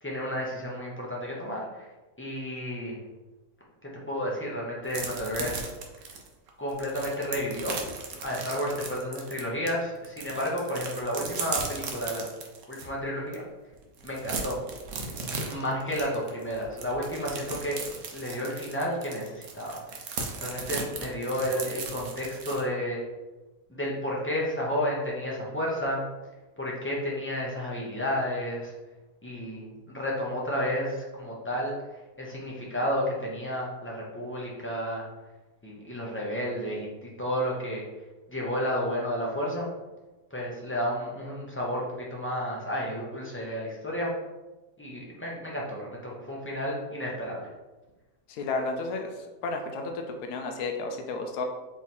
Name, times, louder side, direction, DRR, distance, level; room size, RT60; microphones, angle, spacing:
voice 1, 0.0-1.9 2.2-3.0 4.1-5.7 6.6-7.8 8.2-12.2 12.7-13.4 14.0-14.6 15.4-17.8 18.1-19.8 20.4-23.0 23.7-26.0 26.6-28.7 29.2-35.1 35.6-37.8 38.3-39.7 40.3-44.2 44.8-47.5, equal, 20° left, -4 dB, 0.3 m, -31 dB
sound 1, 4.9-9.7 10.0-12.9 13.3-13.4 13.7-22.6, right 4 dB, 60° right, 0.9 m, -36 dB
voice 2, 48.3-49.1 49.4-51.4, left 3 dB, 70° left, 4 dB, 1.0 m, -32 dB
3.7 x 3.1 x 4.2 m, 1.1 s
omnidirectional pair, 1.8 m